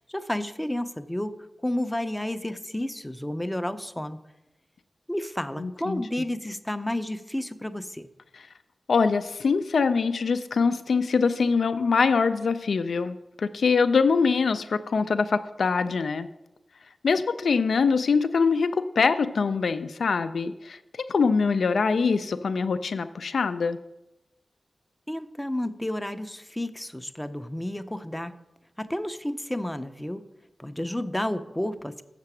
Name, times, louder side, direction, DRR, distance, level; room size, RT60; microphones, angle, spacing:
voice 1, 0.1-1.4 1.6-4.2 5.1-8.1 25.1-28.4 28.8-30.3 30.6-32.0, left 1 dB, 10° left, 10 dB, 0.5 m, -31 dB
voice 2, 5.6-6.0 8.9-16.3 17.0-23.8, left 5 dB, 80° left, 10 dB, 0.3 m, -24 dB
7.5 x 6.6 x 6.0 m, 0.93 s
wide cardioid pair, 90°, 0 cm